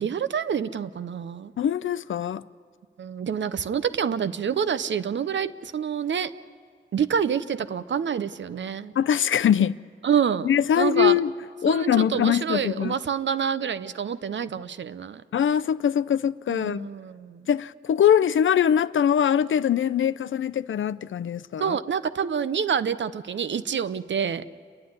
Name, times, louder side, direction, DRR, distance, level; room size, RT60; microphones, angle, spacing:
voice 1, 0.0-1.5 3.0-6.3 6.9-8.9 10.0-10.5 10.8-11.2 11.7-15.2 16.5-17.5 21.6-24.4, right 7 dB, 70° right, 0.6 m, -27 dB
voice 2, 1.6-2.4 9.0-9.8 10.4-11.3 11.6-13.0 15.3-16.9 17.5-21.8, left 9 dB, 80° left, 0.5 m, -22 dB
29.0 x 11.5 x 9.5 m
wide cardioid pair, 180°, 20 cm